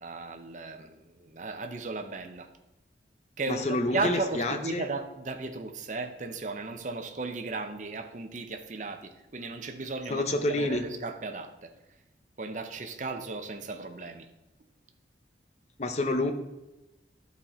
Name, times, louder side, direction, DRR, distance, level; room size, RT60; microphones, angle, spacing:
voice 1, 0.0-2.5 3.4-11.7 12.4-14.3, right 3 dB, 40° right, 7 dB, 0.7 m, -35 dB
voice 2, 3.5-4.9 10.1-10.9 15.8-16.3, left 2 dB, 35° left, 7 dB, 0.6 m, -28 dB
11.5 x 4.2 x 4.3 m, 0.98 s
head